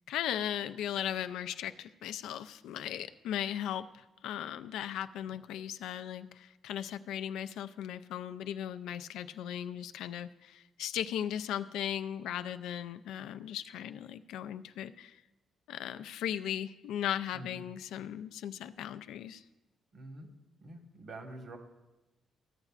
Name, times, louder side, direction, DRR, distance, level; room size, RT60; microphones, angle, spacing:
voice 1, 0.1-15.2 15.7-19.4, left 10 dB, 85° left, 12 dB, 0.3 m, -37 dB
voice 2, 19.9-20.3 20.6-21.6, right 2 dB, 50° right, 4 dB, 1.4 m, -47 dB
14.5 x 7.9 x 2.4 m, 1.0 s
cardioid pair, 90°, 0 cm